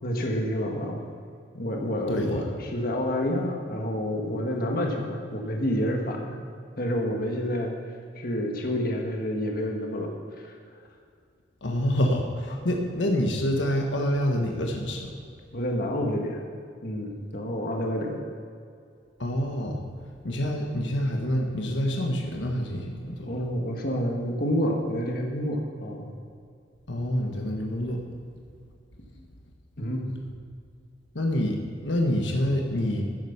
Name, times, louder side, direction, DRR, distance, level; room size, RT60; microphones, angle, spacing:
voice 1, 0.0-1.1 1.5-6.4 6.8-7.7 8.2-10.8 15.5-16.4 16.8-18.2 23.3-26.1 29.8-30.2, equal, 55° left, 1 dB, 1.7 m, -29 dB
voice 2, 2.1-2.4 11.6-15.1 19.2-19.8 20.2-23.3 26.9-28.0 31.1-33.0, left 1 dB, 90° left, 1 dB, 1.4 m, -27 dB
14.0 x 7.8 x 5.9 m, 2.3 s
head